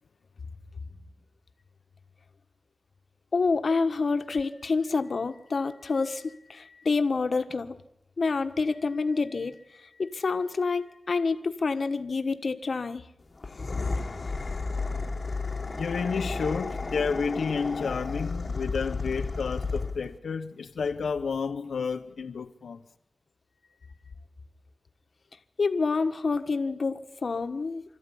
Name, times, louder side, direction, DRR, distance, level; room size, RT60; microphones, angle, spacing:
voice 1, 3.3-7.8 8.2-9.6 10.0-13.1 25.6-27.8, left 4 dB, 55° left, 1.4 m, -28 dB
sound 1, 13.4-20.1, left 3 dB, 40° left, 1.5 m, -32 dB
voice 2, 15.8-22.8, left 5 dB, 90° left, 0.9 m, -30 dB
25.5 x 13.5 x 10.0 m
wide cardioid pair, 90°, 0 cm